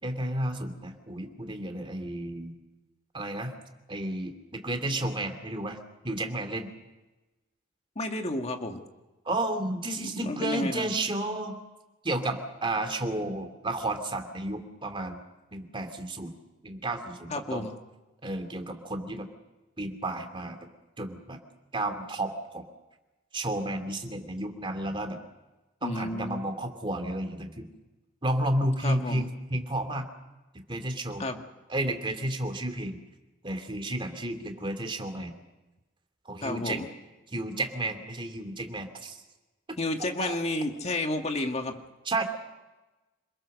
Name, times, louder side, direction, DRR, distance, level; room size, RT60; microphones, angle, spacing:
voice 1, 0.0-2.6 3.1-3.5 3.9-5.8 6.0-6.7 9.2-11.6 12.0-15.2 15.5-16.4 16.6-17.7 18.2-19.3 19.8-20.6 21.0-21.4 21.7-22.7 23.3-25.2 25.8-27.7 28.2-30.1 30.7-31.3 31.7-33.0 33.4-35.3 36.3-36.8 37.3-39.2 40.2-40.4 42.1-42.2, right 1 dB, 25° right, 6 dB, 2.6 m, -32 dB
voice 2, 8.0-8.8 10.0-10.9 17.3-17.7 25.8-26.4 28.8-29.3 31.2-31.4 36.4-36.9 39.8-41.8, left 2 dB, 35° left, 4 dB, 2.0 m, -31 dB
27.5 x 20.5 x 6.5 m, 1.1 s
head